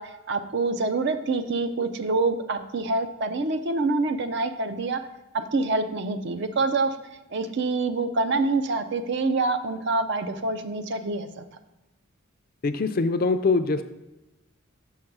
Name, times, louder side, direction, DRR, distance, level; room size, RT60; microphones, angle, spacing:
voice 1, 0.0-5.0 5.3-7.0 7.3-11.4, right 3 dB, 55° right, 9 dB, 0.5 m, -26 dB
voice 2, 12.6-13.8, left 3 dB, 45° left, 9 dB, 0.4 m, -23 dB
6.5 x 3.9 x 5.9 m, 1.0 s
head